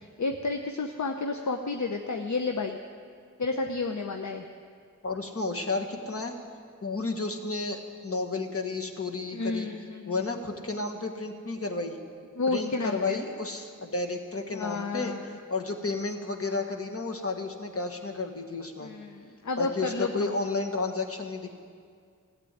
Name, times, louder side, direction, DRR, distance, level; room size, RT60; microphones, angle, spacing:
voice 1, 0.2-2.8 3.4-4.4 9.3-10.2 12.3-13.2 14.5-15.3 18.8-20.3, left 3 dB, 60° left, 4 dB, 0.8 m, -31 dB
voice 2, 5.0-6.3 6.8-9.7 10.1-12.0 12.5-15.2 15.5-18.9 19.6-21.5, left 3 dB, 45° left, 3 dB, 1.6 m, -32 dB
15.0 x 8.4 x 9.8 m, 2.2 s
cardioid pair, 45°, 32 cm